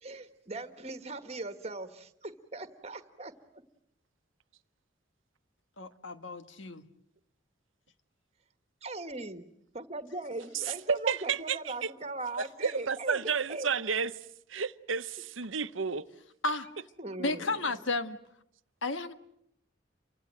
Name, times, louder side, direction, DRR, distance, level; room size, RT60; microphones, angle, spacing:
voice 1, 0.0-3.6 8.8-9.4 9.7-13.7 17.0-17.7, right 2 dB, 30° right, 1.6 m, -40 dB
voice 2, 5.8-6.8 16.4-16.7 17.2-18.2 18.8-19.1, left 2 dB, 80° left, 1.6 m, -32 dB
voice 3, 10.5-11.9 12.4-14.1 14.5-16.0, right 6 dB, 85° right, 1.0 m, -31 dB
29.5 x 24.5 x 7.8 m
head